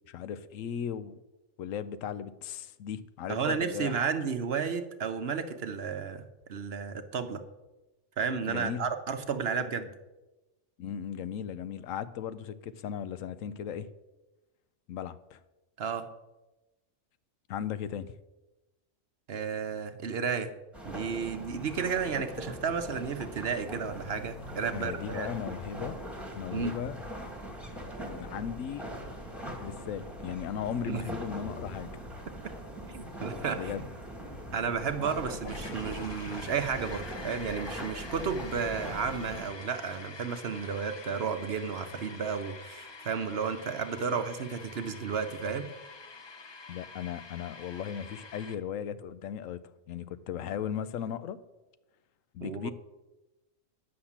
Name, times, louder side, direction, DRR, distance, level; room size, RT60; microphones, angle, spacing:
voice 1, 0.1-1.2 1.6-4.0 8.5-8.9 10.8-13.9 14.9-15.4 17.5-18.1 24.7-26.0 26.3-27.0 28.0-28.9 29.6-31.9 33.5-33.9 46.7-49.6 49.9-51.4 52.3-52.7, left 8 dB, 85° left, 14 dB, 1.0 m, -37 dB
voice 2, 3.3-7.4 8.2-9.9 15.8-16.1 19.3-20.5 20.8-25.3 26.5-26.8 30.9-31.0 32.4-32.5 32.9-33.7 34.5-45.7 52.4-52.7, right 6 dB, 55° right, 9 dB, 1.0 m, -32 dB
sound 1, 20.7-39.5, equal, ahead, 1.6 m, -41 dB
sound 2, 34.7-48.5, left 4 dB, 40° left, 0.4 m, -47 dB
9.7 x 6.5 x 7.2 m, 1.0 s
omnidirectional pair, 1.3 m